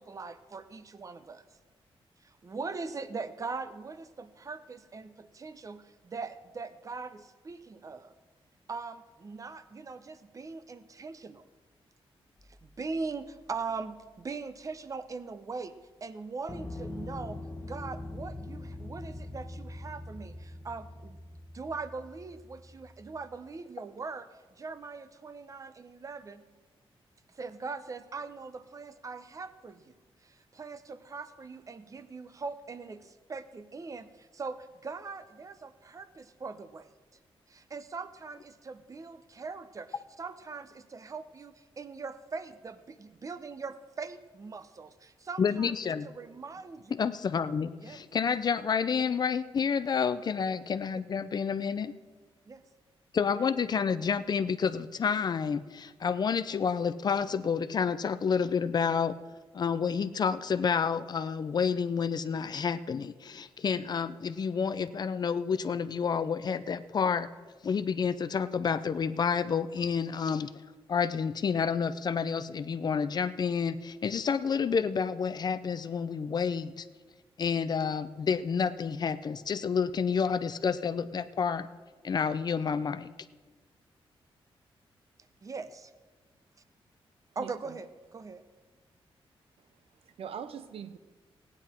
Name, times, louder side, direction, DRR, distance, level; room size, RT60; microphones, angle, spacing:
voice 1, 0.0-1.4 2.2-8.1 8.7-11.4 12.5-15.7 16.0-17.4 17.7-21.2 21.5-24.3 24.6-26.4 27.3-29.9 30.2-36.9 37.5-45.7 46.0-47.0 47.8-48.0 50.9-51.0 52.5-52.6 85.4-85.9 87.4-88.4, right 4 dB, 35° right, 12 dB, 0.7 m, -41 dB
sound 1, 12.4-12.6 16.5-23.2, left 2 dB, 20° left, 1.3 m, -43 dB
voice 2, 45.4-46.1 46.9-51.9 53.1-59.2 59.5-67.3 67.6-70.5 70.9-76.9 77.4-81.7 82.0-83.1, left 6 dB, 45° left, 13 dB, 0.5 m, -29 dB
voice 3, 87.4-87.8 90.0-91.0, right 8 dB, 75° right, 12 dB, 0.6 m, -42 dB
16.5 x 9.8 x 4.4 m, 1.3 s
wide cardioid pair, 120°, 10 cm